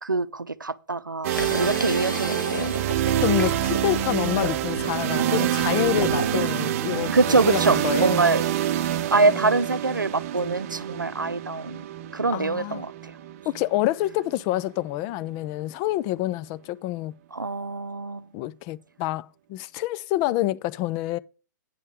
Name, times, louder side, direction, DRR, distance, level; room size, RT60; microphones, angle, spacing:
voice 1, 0.0-2.9 7.1-8.4 9.1-11.8 12.1-12.9 17.3-18.2, right 3 dB, 90° right, 0.6 m, -24 dB
sound 1, 1.2-15.1, right 11 dB, 45° right, 0.7 m, -27 dB
sound 2, 1.3-6.7, left 3 dB, 85° left, 1.1 m, -34 dB
voice 2, 3.2-8.2 9.2-9.4 12.3-12.9 13.5-17.1 18.3-21.2, left 16 dB, 35° left, 0.5 m, -27 dB
9.3 x 5.4 x 6.1 m
figure-of-eight pair, 110°, 10 cm